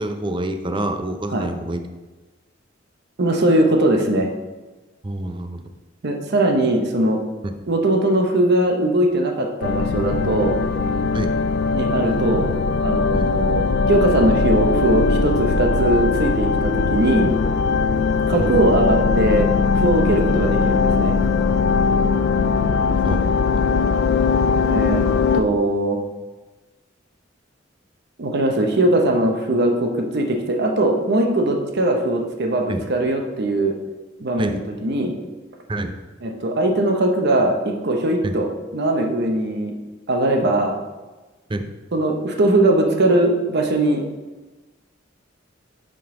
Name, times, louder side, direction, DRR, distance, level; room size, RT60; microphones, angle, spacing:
voice 1, 0.0-1.8 5.0-5.6 11.1-11.3 13.1-13.3 18.4-18.5 23.1-23.3 32.7-32.8 34.4-34.6 35.7-36.0 38.2-38.3 41.5-41.7, right 1 dB, 25° right, 7 dB, 0.5 m, -27 dB
voice 2, 3.2-4.3 6.0-7.2 7.7-10.6 11.7-12.5 12.8-17.3 18.3-21.2 24.7-25.0 25.3-26.0 28.2-33.7 34.2-35.1 36.2-38.5 38.7-39.7 40.1-40.8 41.9-44.1, right 1 dB, 60° right, 3 dB, 0.8 m, -20 dB
sound 1, 9.6-25.4, left 4 dB, 60° left, 0.4 m, -20 dB
10.5 x 3.8 x 3.7 m, 1.2 s
head